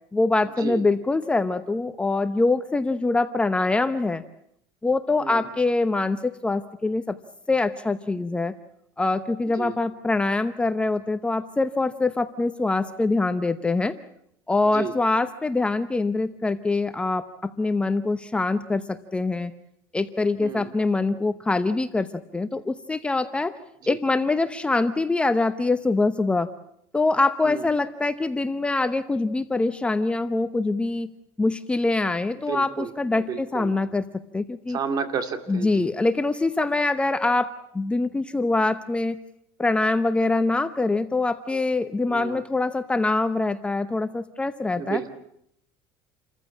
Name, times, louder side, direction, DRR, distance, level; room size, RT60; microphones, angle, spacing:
voice 1, 0.1-4.2 4.8-7.2 7.5-8.5 9.0-13.9 14.5-19.5 19.9-22.1 22.3-23.5 23.9-26.5 26.9-31.1 31.4-34.1 34.3-34.8 35.5-39.2 39.6-45.0, left 3 dB, 10° left, 11 dB, 0.9 m, -24 dB
voice 2, 32.5-32.9 33.2-33.7 34.7-35.9 42.1-42.4 44.8-45.1, right 6 dB, 45° right, 7 dB, 2.8 m, -31 dB
28.5 x 14.5 x 8.6 m, 0.73 s
supercardioid pair, 120°, 9 cm